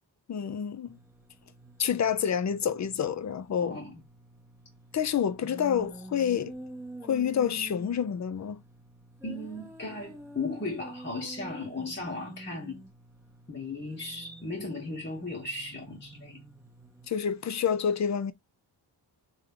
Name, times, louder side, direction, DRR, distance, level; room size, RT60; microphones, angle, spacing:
voice 1, 0.3-1.0 1.8-3.8 4.9-6.5 7.0-8.6 17.1-18.3, left 8 dB, 40° left, 0.4 m, -28 dB
sound 1, 0.9-17.1, right 1 dB, 5° right, 0.7 m, -48 dB
voice 2, 3.6-4.0 9.2-12.8 13.5-16.4, left 3 dB, 25° left, 1.0 m, -36 dB
3.3 x 2.3 x 3.6 m
wide cardioid pair, 85°, 45 cm